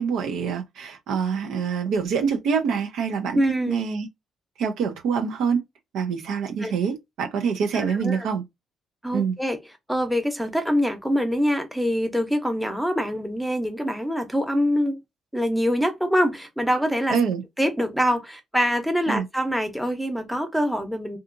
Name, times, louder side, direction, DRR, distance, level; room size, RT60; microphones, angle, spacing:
voice 1, 0.0-3.4 3.7-4.1 4.6-5.6 5.9-8.4 9.1-9.4 17.1-17.4 19.1-19.2, right 6 dB, 85° right, 0.6 m, -25 dB
voice 2, 3.3-3.7 6.6-6.7 7.7-8.3 9.0-9.6 9.9-15.0 15.3-17.2 17.6-21.2, equal, ahead, 0.8 m, -24 dB
2.7 x 2.4 x 2.5 m
cardioid pair, 90°, 0 cm